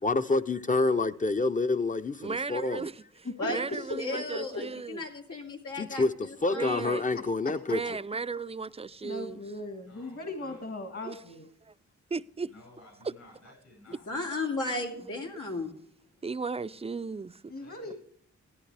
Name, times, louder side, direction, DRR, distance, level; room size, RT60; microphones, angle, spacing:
voice 1, 0.0-2.9 5.8-6.1 6.4-7.8, left 3 dB, 25° left, 0.6 m, -27 dB
voice 2, 2.2-5.0 6.5-7.1 7.7-9.4 11.0-11.2 11.7-11.8 12.1-12.5 14.3-14.4 16.2-17.5, right 4 dB, 20° right, 0.4 m, -36 dB
voice 3, 3.9-6.8 14.1-15.8, left 2 dB, 90° left, 2.4 m, -35 dB
voice 4, 9.0-11.5 17.5-17.9, left 1 dB, 50° left, 1.8 m, -38 dB
voice 5, 9.8-10.7 12.4-14.2 17.6-17.9, left 2 dB, 65° left, 6.2 m, -55 dB
14.0 x 11.0 x 3.3 m
cardioid pair, 60°, 30 cm